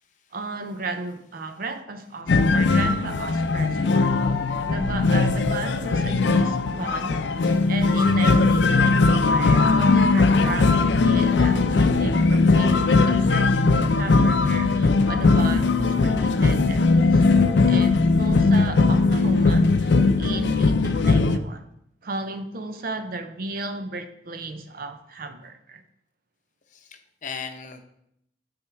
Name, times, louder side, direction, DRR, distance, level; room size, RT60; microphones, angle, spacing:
voice 1, 0.3-4.2 4.7-21.6 22.0-25.8, right 2 dB, 55° right, 8 dB, 0.6 m, -34 dB
sound 1, 2.3-21.4, left 3 dB, 80° left, 0.5 m, -19 dB
voice 2, 26.7-27.8, left 6 dB, 45° left, 6 dB, 0.7 m, -37 dB
8.6 x 3.6 x 4.7 m, 0.76 s
head